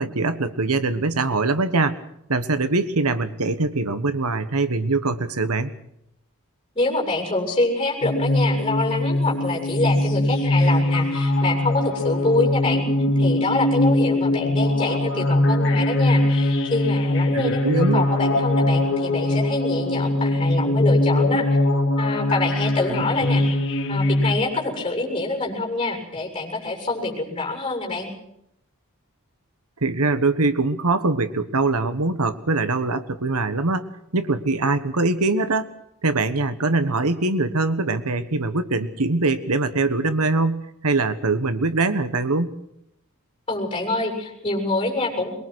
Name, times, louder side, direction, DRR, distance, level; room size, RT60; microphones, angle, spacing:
voice 1, 0.0-2.0 2.3-5.7 17.3-18.0 22.9-23.0 29.8-35.7 36.0-42.5, right 3 dB, 80° right, 12 dB, 1.4 m, -23 dB
voice 2, 6.7-12.8 13.2-21.5 22.0-23.4 23.9-28.1 43.5-45.4, left 2 dB, 25° left, 1 dB, 7.4 m, -26 dB
sound 1, 8.0-24.3, left 1 dB, 55° left, 2.5 m, -21 dB
23.0 x 22.5 x 6.3 m, 0.77 s
head